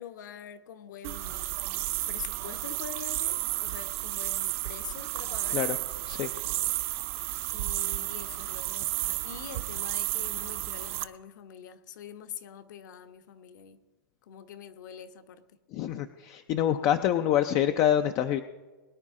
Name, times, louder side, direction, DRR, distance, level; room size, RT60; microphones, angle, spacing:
voice 1, 0.0-1.5 2.1-5.6 7.5-13.8 14.3-15.4, left 8 dB, 60° left, 9 dB, 1.1 m, -45 dB
sound 1, 1.0-11.0, right 17 dB, 40° right, 0.6 m, -32 dB
voice 2, 15.7-18.4, left 11 dB, 25° left, 9 dB, 0.4 m, -26 dB
21.5 x 9.6 x 3.7 m, 1.3 s
hypercardioid pair, 160°, 11 cm